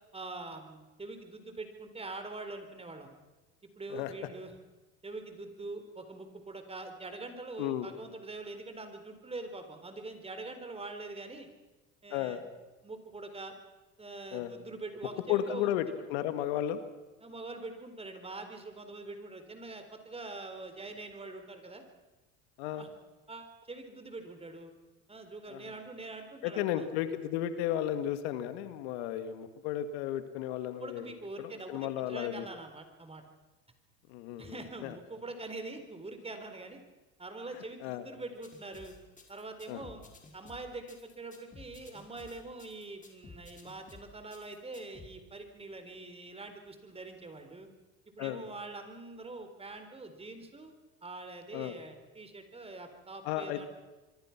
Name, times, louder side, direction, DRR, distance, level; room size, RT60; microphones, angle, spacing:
voice 1, 0.1-3.1 3.8-4.5 5.0-11.5 12.0-12.4 12.8-13.5 14.0-15.9 17.2-21.8 22.8-22.9 23.3-24.7 25.1-26.8 30.8-33.2 34.4-36.8 37.2-38.9 39.3-40.0 40.3-47.7 48.1-50.7 51.0-53.7, right 2 dB, 20° right, 7 dB, 4.1 m, -44 dB
voice 2, 12.1-12.4 14.3-14.5 15.3-16.8 22.6-22.9 25.5-25.6 26.4-31.1 31.4-32.5 34.1-34.9 37.8-38.0 39.7-39.9 48.2-48.4 51.5-51.7 53.3-53.6, left 11 dB, 75° left, 10 dB, 2.1 m, -34 dB
sound 1, 38.4-45.1, left 3 dB, 25° left, 5.1 m, -53 dB
26.0 x 23.0 x 6.0 m, 1.2 s
supercardioid pair, 95°, 33 cm